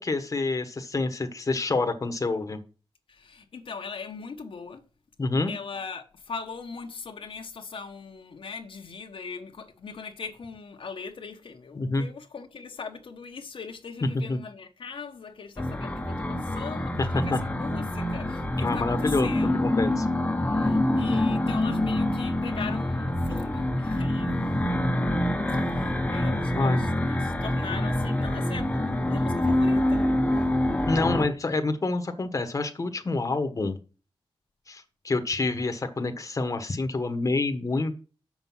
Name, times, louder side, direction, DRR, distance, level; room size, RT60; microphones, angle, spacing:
voice 1, 0.0-2.6 5.2-5.5 11.8-12.0 14.0-14.4 17.0-17.4 18.6-19.3 19.6-20.1 26.5-26.8 30.9-33.8 34.7-38.0, left 3 dB, 35° left, 1.2 m, -27 dB
voice 2, 3.1-4.8 5.5-19.6 20.4-24.6 25.5-30.4, left 5 dB, 65° left, 1.1 m, -40 dB
sound 1, 15.6-31.3, left 1 dB, 15° left, 1.0 m, -26 dB
6.7 x 6.1 x 5.5 m
wide cardioid pair, 80°, 10 cm